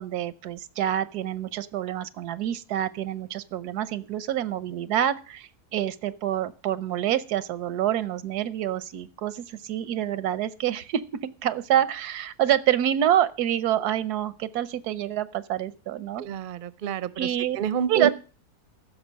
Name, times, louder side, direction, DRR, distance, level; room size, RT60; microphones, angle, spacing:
voice 1, 0.0-16.2 17.2-17.6 17.9-18.1, right 11 dB, 90° right, 15 dB, 1.3 m, -27 dB
voice 2, 16.2-17.3 17.5-18.1, right 8 dB, 55° right, 16 dB, 0.6 m, -28 dB
15.0 x 6.2 x 6.3 m, 0.37 s
omnidirectional pair, 1.6 m